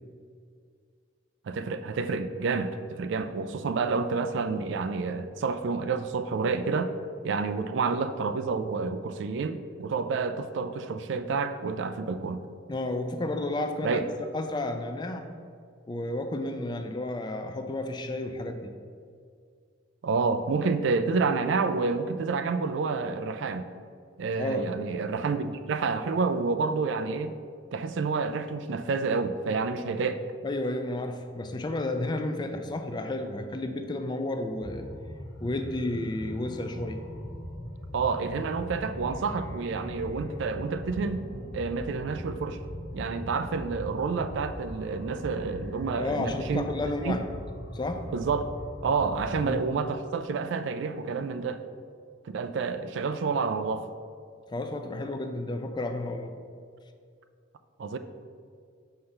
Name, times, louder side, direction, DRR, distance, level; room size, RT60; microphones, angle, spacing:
voice 1, 1.5-6.9 7.2-12.4 13.8-14.0 20.0-23.7 24.2-27.3 27.7-30.2 37.9-41.2 41.5-42.6 42.9-46.6 47.0-47.2 48.1-48.5 48.8-51.6 52.3-53.9 57.8-58.0, right 4 dB, 65° right, 10 dB, 0.3 m, -29 dB
voice 2, 12.7-15.3 15.9-18.7 24.4-24.7 30.4-34.9 35.4-37.0 46.0-47.2 47.7-48.0 49.4-49.6 54.5-56.3, left 2 dB, 20° left, 6 dB, 0.4 m, -32 dB
sound 1, 34.5-49.5, equal, 75° left, 1.0 m, -40 dB
5.6 x 3.3 x 5.7 m, 2.2 s
head